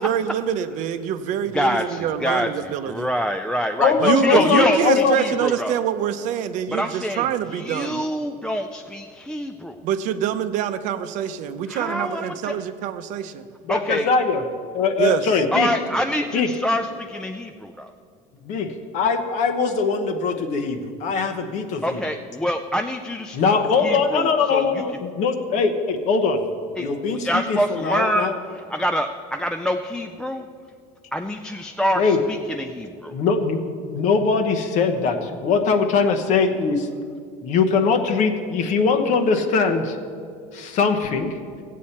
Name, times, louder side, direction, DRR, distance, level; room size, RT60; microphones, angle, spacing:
voice 1, 0.0-3.1 4.0-8.0 9.8-13.4 15.0-15.2, right 9 dB, 55° right, 10 dB, 0.6 m, -25 dB
voice 2, 1.5-5.8 6.7-7.2 7.5-9.8 11.7-12.6 13.7-14.1 15.5-17.9 21.8-23.4 23.8-24.7 26.8-26.9 27.2-28.3 28.7-30.5 31.1-32.0 32.3-33.1, equal, 5° left, 5 dB, 0.3 m, -25 dB
voice 3, 3.8-5.2 13.6-14.4 14.7-15.7 16.3-16.5 18.4-22.0 23.3-26.4 26.8-28.3 32.0-32.2 33.1-36.9 37.4-40.0 40.5-41.4, left 5 dB, 50° left, 7 dB, 1.0 m, -21 dB
14.5 x 8.4 x 4.3 m, 2.2 s
cardioid pair, 140°, 15 cm